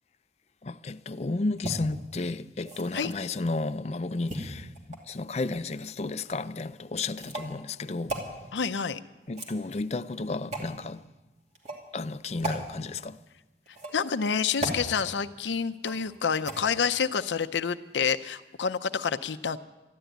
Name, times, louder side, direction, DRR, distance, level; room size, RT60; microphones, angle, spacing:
voice 1, 0.6-8.2 9.3-11.0 11.9-13.2, left 3 dB, 35° left, 0.4 m, -32 dB
sound 1, 1.6-1.7 2.6-3.3 4.3-5.2 6.2-6.4 7.2-7.5 8.1-8.3 9.2-9.9 10.5-10.7 11.6-11.8 12.4-12.6 13.7-14.1 14.6-14.8 15.8-16.1 16.5-16.6, right 2 dB, 40° right, 2.5 m, -35 dB
voice 2, 8.5-9.0 13.9-19.6, left 6 dB, 90° left, 0.6 m, -28 dB
13.0 x 11.5 x 9.2 m
head